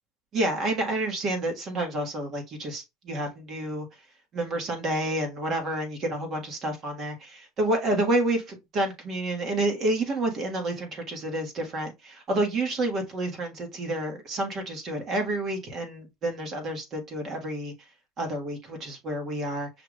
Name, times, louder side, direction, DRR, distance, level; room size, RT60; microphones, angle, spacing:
voice 1, 0.3-3.9 4.3-17.7 18.2-19.7, right 1 dB, 40° right, 1.5 m, -29 dB
5.7 x 2.4 x 3.3 m
cardioid pair, 135°, 0 cm